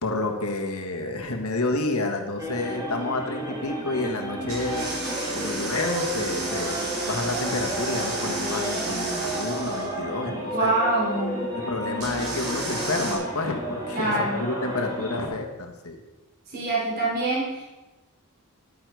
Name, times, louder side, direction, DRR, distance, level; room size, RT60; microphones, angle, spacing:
voice 1, 0.0-4.9 5.3-6.8 7.1-10.7 11.5-16.0, left 2 dB, 75° left, 3 dB, 1.6 m, -29 dB
sound 1, 2.4-15.3, right 1 dB, 15° right, 2.8 m, -32 dB
sound 2, 4.5-9.9 12.0-13.1, right 2 dB, 80° right, 4.1 m, -32 dB
voice 2, 10.5-11.4 13.9-14.5 16.5-17.6, right 2 dB, 45° right, -7 dB, 4.2 m, -25 dB
11.0 x 9.2 x 4.8 m, 1.1 s
head